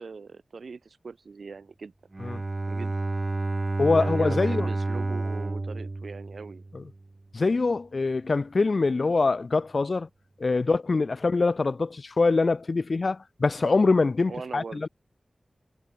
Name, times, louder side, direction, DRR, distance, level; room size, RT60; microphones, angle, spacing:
voice 1, 0.0-1.9 2.7-2.9 4.0-6.7 14.3-14.8, right 4 dB, 80° right, 3.5 m, -40 dB
Bowed string instrument, 2.1-6.9, right 2 dB, 35° right, 0.4 m, -30 dB
voice 2, 3.8-4.7 6.7-6.8 7.3-10.1 10.4-14.9, left 3 dB, 55° left, 1.6 m, -24 dB
wide cardioid pair, 90°, 0 cm